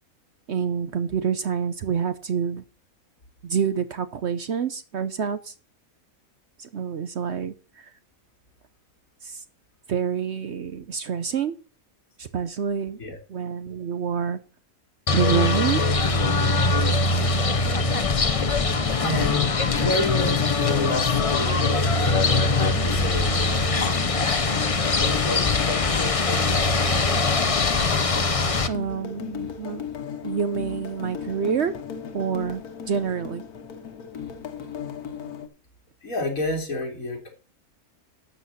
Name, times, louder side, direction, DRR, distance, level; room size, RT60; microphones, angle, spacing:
voice 1, 0.5-2.6 3.4-5.5 6.6-7.5 9.2-9.4 9.9-11.5 12.2-13.0 13.3-14.4 15.1-15.8 28.7-29.8 30.2-31.7 32.1-32.6 32.9-33.4, right 7 dB, 55° right, 12 dB, 0.9 m, -27 dB
sound 1, 15.1-28.7, left 3 dB, 30° left, 0.6 m, -22 dB
sound 2, 17.1-35.5, left 7 dB, 90° left, 1.7 m, -37 dB
voice 2, 19.0-24.6 25.0-26.8 36.0-37.3, left 2 dB, 65° left, 2 dB, 3.4 m, -31 dB
12.0 x 8.1 x 4.1 m, 0.36 s
omnidirectional pair, 1.5 m